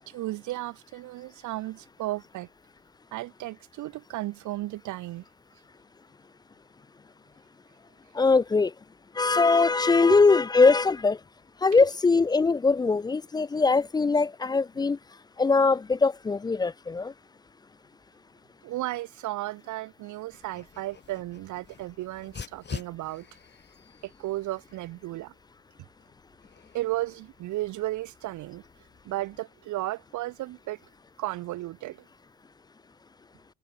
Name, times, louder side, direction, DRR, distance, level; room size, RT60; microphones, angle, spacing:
voice 1, 0.1-2.5 3.1-5.2 10.0-10.2 11.8-11.9 18.6-23.3 24.0-25.3 26.7-28.6 29.0-30.8 31.2-32.0, right 17 dB, 70° right, 1.4 m, -34 dB
voice 2, 8.1-8.7 9.2-11.2 11.6-15.0 15.4-17.1, left 4 dB, 15° left, 0.3 m, -21 dB
Dog, 20.3-29.4, left 6 dB, 35° left, 5.4 m, -47 dB
cardioid pair, 110°, 31 cm